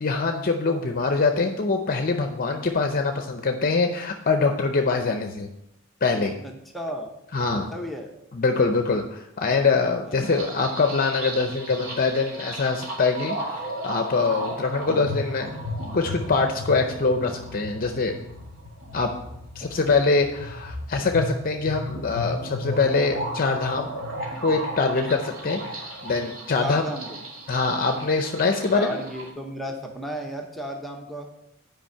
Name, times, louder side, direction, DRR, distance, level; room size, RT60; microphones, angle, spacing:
voice 1, 0.0-5.5 6.0-6.3 7.3-7.7 8.3-13.4 13.8-15.5 15.9-18.1 18.9-19.1 19.6-23.9 24.4-26.9 27.5-29.0, left 4 dB, 45° left, 5 dB, 0.6 m, -24 dB
voice 2, 6.4-7.1 7.5-8.1 10.0-10.2 26.6-27.2 28.7-31.3, equal, ahead, 1 dB, 0.7 m, -34 dB
sound 1, 10.2-29.3, equal, 90° right, 2.6 m, -35 dB
9.0 x 5.2 x 5.5 m, 0.83 s
head